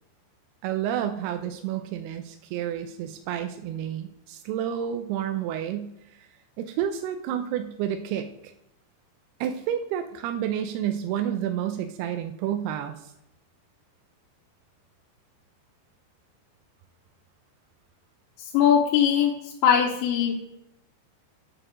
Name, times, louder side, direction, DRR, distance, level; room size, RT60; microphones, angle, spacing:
voice 1, 0.6-5.9 6.2-6.3 6.6-8.3 9.4-13.1, right 10 dB, 85° right, 7 dB, 2.3 m, -30 dB
voice 2, 18.4-20.4, left 8 dB, 80° left, -1 dB, 3.1 m, -21 dB
9.9 x 4.8 x 6.0 m, 0.80 s
omnidirectional pair, 5.3 m